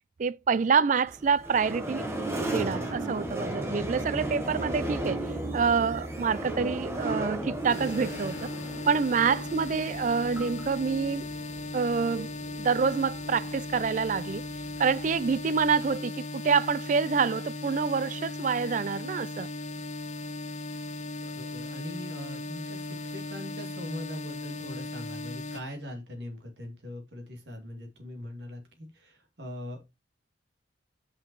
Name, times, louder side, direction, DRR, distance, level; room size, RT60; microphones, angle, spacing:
voice 1, 0.2-2.1 2.5-5.2 5.5-8.5 8.9-11.3 11.7-12.3 12.6-14.4 14.8-19.5, right 5 dB, 40° right, 0.3 m, -27 dB
sound 1, 1.1-16.0, right 1 dB, 15° right, 1.3 m, -36 dB
sound 2, 7.7-25.6, left 2 dB, 40° left, 1.0 m, -37 dB
voice 2, 21.2-30.0, left 1 dB, 60° right, 2.3 m, -41 dB
5.7 x 5.6 x 4.6 m
head